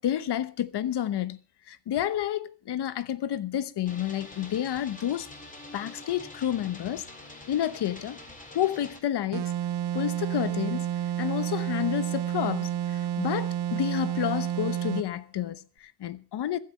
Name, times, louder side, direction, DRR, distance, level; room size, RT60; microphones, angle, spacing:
voice 1, 0.0-1.4 1.7-5.3 5.7-7.1 7.5-8.2 8.5-9.5 9.9-10.9 11.2-16.6, left 11 dB, 75° left, 1.1 m, -30 dB
sound 1, 3.8-9.0, left 2 dB, 20° left, 3.9 m, -46 dB
sound 2, 9.3-15.1, right 11 dB, 75° right, 0.9 m, -30 dB
15.5 x 10.5 x 5.3 m
cardioid pair, 100°, 40 cm